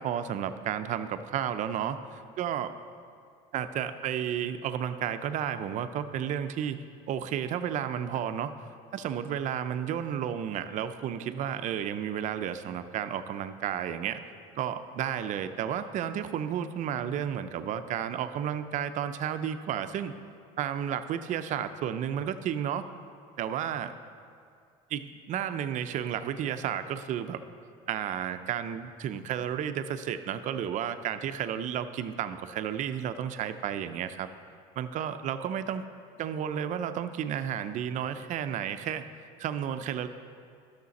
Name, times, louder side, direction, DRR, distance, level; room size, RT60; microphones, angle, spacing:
voice 1, 0.0-2.7 3.5-6.8 7.1-8.6 8.9-14.2 14.6-20.1 20.6-22.9 23.4-23.9 24.9-27.4 27.9-34.3 34.8-35.8 36.2-39.1 39.4-40.1, right 9 dB, 50° right, 10 dB, 0.5 m, -32 dB
12.0 x 6.6 x 4.1 m, 2.3 s
cardioid pair, 130°, 17 cm